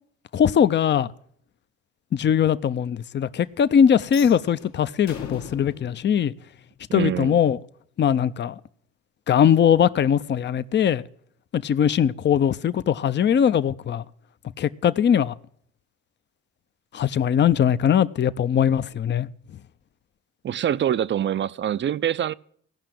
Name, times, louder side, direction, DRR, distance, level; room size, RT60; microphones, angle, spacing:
voice 1, 0.3-1.1 2.1-6.3 6.9-7.6 8.0-8.6 9.3-11.0 11.5-14.0 14.6-15.3 16.9-19.3, left 8 dB, 35° left, 0.5 m, -20 dB
sound 1, 4.0-7.1, left 7 dB, 65° left, 1.6 m, -41 dB
voice 2, 6.9-7.4 20.4-22.3, right 10 dB, 40° right, 0.4 m, -25 dB
16.0 x 5.8 x 7.6 m
cardioid pair, 90°, 30 cm